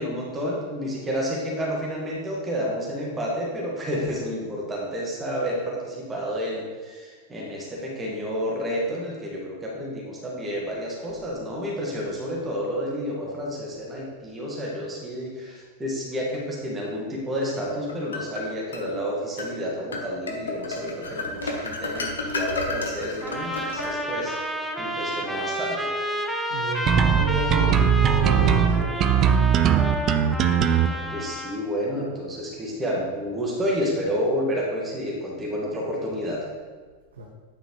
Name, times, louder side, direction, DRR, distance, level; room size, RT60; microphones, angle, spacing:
voice 1, 0.0-24.4 24.8-25.9 30.8-36.4, equal, 15° right, -3 dB, 1.7 m, -30 dB
sound 1, 17.5-18.9 19.4-19.5 19.9-24.3, left 3 dB, 70° left, 1.0 m, -32 dB
sound 2, 23.2-31.6, equal, ahead, 0.7 m, -30 dB
voice 2, 26.5-27.8 28.0-29.4 37.2-37.3, right 3 dB, 70° right, -1 dB, 0.9 m, -32 dB
sound 3, 26.9-30.9, right 8 dB, 35° right, 0.4 m, -19 dB
9.2 x 4.9 x 3.2 m, 1.4 s
figure-of-eight pair, 90°, 0 cm